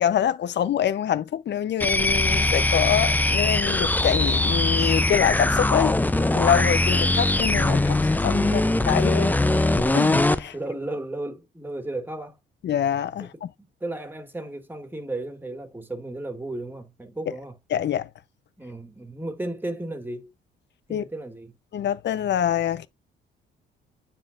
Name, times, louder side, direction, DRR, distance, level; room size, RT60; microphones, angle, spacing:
voice 1, 0.0-5.9 6.3-8.6 8.9-9.3 9.9-10.5 12.6-13.5 17.7-18.1 20.9-21.0 21.7-22.9, left 9 dB, 60° left, 0.9 m, -25 dB
sound 1, 1.8-10.4, left 2 dB, 10° left, 0.7 m, -21 dB
voice 2, 8.5-9.3 10.5-12.4 13.2-13.3 13.8-17.5 18.6-20.3 20.9-21.5, right 2 dB, 10° right, 2.6 m, -34 dB
9.5 x 4.4 x 2.6 m
cardioid pair, 90°, 20 cm